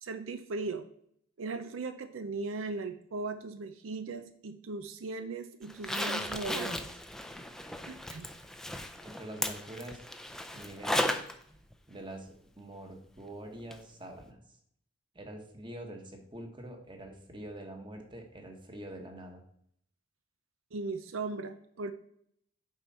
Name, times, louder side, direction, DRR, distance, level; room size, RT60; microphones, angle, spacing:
voice 1, 0.0-0.9 1.4-6.9 7.9-8.3 20.7-21.9, right 3 dB, 80° right, 10 dB, 0.5 m, -38 dB
Zipper (clothing), 5.7-11.3 11.7-11.8 13.7-13.8 14.2-14.3, left 1 dB, ahead, 0.5 m, -35 dB
voice 2, 9.0-10.0 10.5-11.2 11.9-14.4 15.1-19.4, right 1 dB, 25° right, 4 dB, 1.3 m, -45 dB
9.0 x 5.4 x 4.2 m, 0.68 s
head